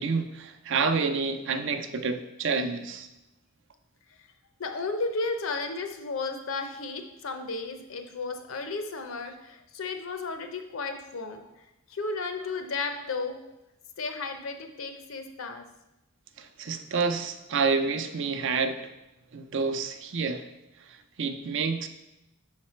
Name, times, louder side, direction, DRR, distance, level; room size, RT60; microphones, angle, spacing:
voice 1, 0.0-3.1 16.4-18.8 19.3-20.5 21.2-21.9, right 4 dB, 60° right, 8 dB, 0.5 m, -28 dB
voice 2, 4.6-11.5 11.9-13.5 14.0-15.7, left 3 dB, 65° left, 7 dB, 0.7 m, -33 dB
6.4 x 4.2 x 4.3 m, 0.94 s
head